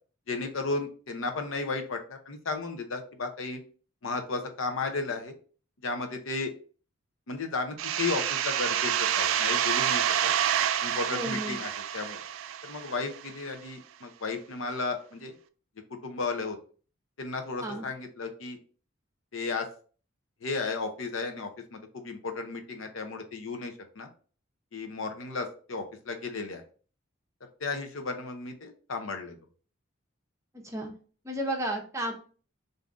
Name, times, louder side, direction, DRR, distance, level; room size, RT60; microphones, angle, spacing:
voice 1, 0.3-3.6 4.0-5.3 5.8-6.5 7.3-10.3 10.8-12.2 12.6-15.3 15.9-16.6 17.2-18.6 19.3-19.7 20.4-24.1 24.7-26.6 27.6-29.4, left 3 dB, 75° left, 6 dB, 0.7 m, -34 dB
sound 1, 7.8-13.3, right 10 dB, 70° right, 0.3 m, -28 dB
voice 2, 11.1-11.6 17.6-17.8 30.6-30.9 31.2-32.1, right 1 dB, 15° right, 2 dB, 0.7 m, -32 dB
3.6 x 2.6 x 3.5 m, 0.40 s
head